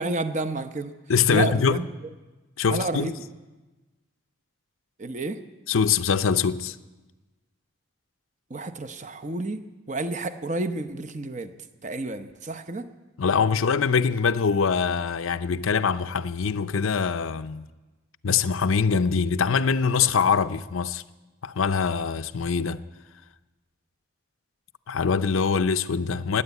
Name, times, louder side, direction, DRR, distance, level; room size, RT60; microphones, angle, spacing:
voice 1, 0.0-0.9 1.3-1.9 2.7-3.2 5.0-5.4 8.5-9.6 9.9-11.5 11.8-12.9, right 2 dB, 35° right, 0.8 m, -30 dB
voice 2, 1.1-1.8 2.6-3.1 5.7-6.8 13.2-17.7 18.2-21.0 21.4-22.8 24.9-26.4, left 6 dB, 85° left, 0.6 m, -23 dB
17.5 x 9.8 x 8.2 m
head